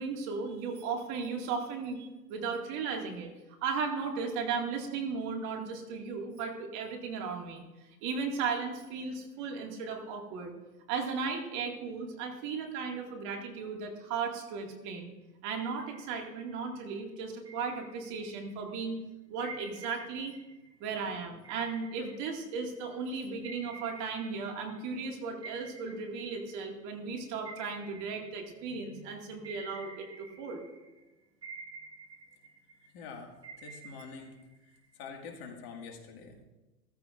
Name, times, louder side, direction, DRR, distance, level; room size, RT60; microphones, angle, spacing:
voice 1, 0.0-3.3 3.6-7.6 8.0-10.5 10.9-15.1 15.4-19.0 19.3-20.3 20.8-30.6, right 5 dB, 35° right, 2 dB, 2.2 m, -36 dB
sound 1, 15.5-16.7 17.4-18.6 19.4-23.0 23.4-25.1 25.4-29.0 29.4-31.0 31.4-33.0 33.4-35.1, right 4 dB, 10° right, 1.7 m, -50 dB
voice 2, 32.9-34.4 35.0-36.4, left 5 dB, 40° left, 3 dB, 2.1 m, -45 dB
15.0 x 14.0 x 2.6 m, 1.1 s
hypercardioid pair, 115°, 48 cm